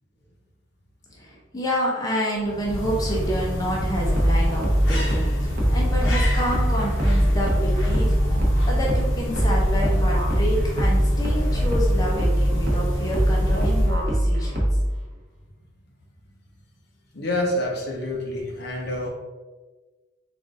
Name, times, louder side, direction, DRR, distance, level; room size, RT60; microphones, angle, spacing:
voice 1, 1.1-14.7, equal, 20° left, -4 dB, 0.6 m, -29 dB
sound 1, 2.4-14.2, equal, 80° left, 1.0 m, -27 dB
sound 2, 4.0-15.0, equal, 45° right, 0.9 m, -22 dB
voice 2, 17.1-19.1, left 1 dB, 55° left, 0 dB, 0.7 m, -27 dB
4.0 x 2.4 x 3.6 m, 1.3 s
head